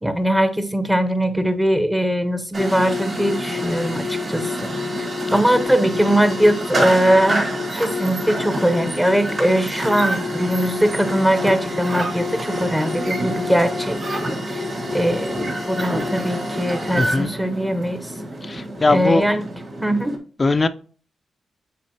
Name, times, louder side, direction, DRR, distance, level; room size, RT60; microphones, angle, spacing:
voice 1, 0.0-4.7 5.3-7.4 7.7-14.0 14.5-14.6 14.9-15.4 15.7-18.1 18.9-19.4 19.8-20.2, right 1 dB, 5° right, 0.8 m, -20 dB
sound 1, 2.5-20.2, equal, 50° right, 2.4 m, -26 dB
voice 2, 17.0-17.3 18.4-19.2 20.4-20.7, left 3 dB, 30° left, 0.4 m, -19 dB
8.4 x 4.1 x 2.9 m
cardioid pair, 85°, 0 cm